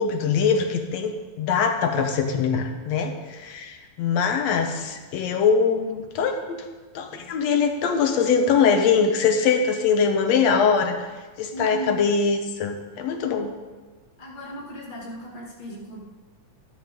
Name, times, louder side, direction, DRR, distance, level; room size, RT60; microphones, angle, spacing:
voice 1, 0.0-6.6 6.9-11.0 11.4-13.5, left 6 dB, 70° left, 5 dB, 1.8 m, -22 dB
voice 2, 11.5-12.0 14.2-16.0, equal, 20° left, -4 dB, 1.8 m, -36 dB
12.5 x 12.5 x 3.7 m, 1.3 s
omnidirectional pair, 3.7 m